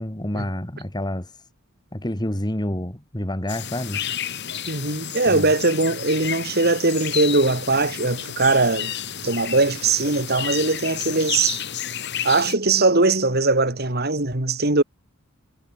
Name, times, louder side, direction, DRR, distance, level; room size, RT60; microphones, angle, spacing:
voice 1, 0.0-1.3 1.9-4.0 5.3-5.5, left 1 dB, 20° left, 2.0 m, -28 dB
sound 1, 3.5-12.5, left 9 dB, 55° left, 7.6 m, -31 dB
voice 2, 4.7-8.9 9.2-11.6 12.2-14.8, right 3 dB, 50° right, 3.0 m, -20 dB
head